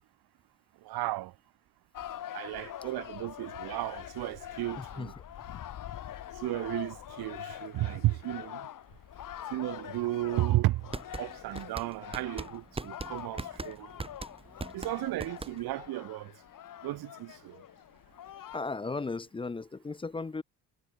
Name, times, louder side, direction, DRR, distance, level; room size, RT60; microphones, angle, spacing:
voice 1, 0.8-1.3 2.3-5.1 6.4-8.6 9.5-10.9 11.2-13.9 14.7-16.3 16.8-17.6, right 17 dB, 65° right, 0.9 m, -33 dB
sound 1, 1.9-18.6, left 11 dB, 50° left, 2.3 m, -44 dB
voice 2, 4.8-5.1 18.5-20.4, left 3 dB, 15° left, 0.6 m, -36 dB
sound 2, 10.7-15.9, right 3 dB, 15° right, 1.2 m, -40 dB
cardioid pair, 115°, 41 cm